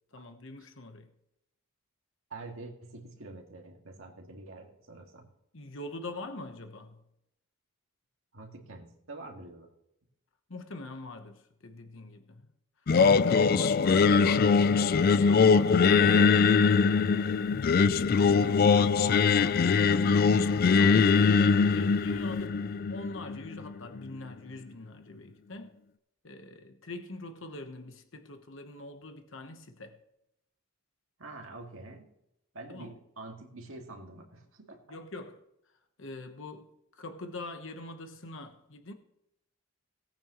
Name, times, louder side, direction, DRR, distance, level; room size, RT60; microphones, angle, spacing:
voice 1, 0.1-1.1 5.5-7.0 10.5-12.4 13.3-17.5 20.0-25.8 26.2-30.0 32.7-32.9 34.9-35.4 36.0-36.7 37.0-38.9, left 2 dB, 65° left, 1.1 m, -43 dB
voice 2, 2.3-5.3 8.3-9.7 13.3-13.5 18.2-19.3 31.2-32.1 32.5-35.0, right 2 dB, 75° right, 2.0 m, -46 dB
Singing, 12.9-24.0, left 5 dB, 45° left, 0.4 m, -22 dB
18.0 x 8.8 x 3.1 m
head